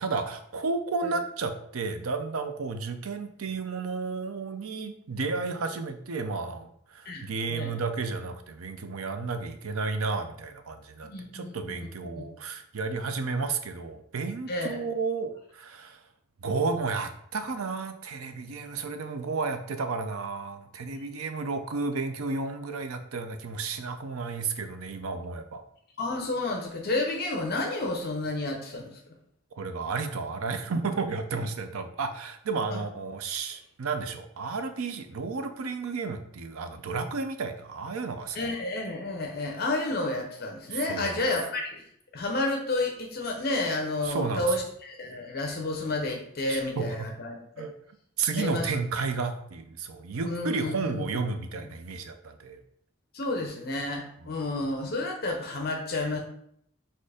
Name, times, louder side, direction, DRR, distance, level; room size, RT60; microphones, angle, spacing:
voice 1, 0.0-16.0 16.4-25.6 29.6-38.4 40.7-41.2 44.0-44.5 46.5-46.9 47.6-47.7 48.2-52.6, right 4 dB, 85° right, 8 dB, 0.6 m, -32 dB
voice 2, 7.0-7.7 11.0-11.9 12.2-12.3 14.5-14.8 26.0-29.0 32.7-32.8 38.3-41.8 42.1-47.6 48.4-48.7 50.2-51.1 53.1-56.2, left 2 dB, 45° left, 2 dB, 0.7 m, -31 dB
4.3 x 2.5 x 4.9 m, 0.70 s
head